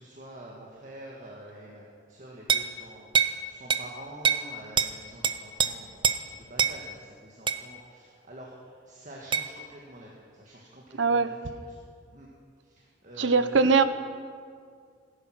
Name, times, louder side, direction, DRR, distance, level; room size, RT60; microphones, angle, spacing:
voice 1, 0.0-11.8 12.0-12.3 12.6-13.8, right 1 dB, 40° right, -3 dB, 1.7 m, -46 dB
sound 1, 2.5-2.7 3.1-3.4 3.7-3.9 4.2-4.5 4.8-4.9 5.2-5.7 6.0-6.2 6.6-6.8 7.5-7.6 9.3-9.5, right 6 dB, 25° right, 0.6 m, -24 dB
voice 2, 11.0-11.3 13.2-13.8, right 4 dB, 75° right, 12 dB, 0.8 m, -21 dB
17.5 x 10.0 x 6.3 m, 2.1 s
head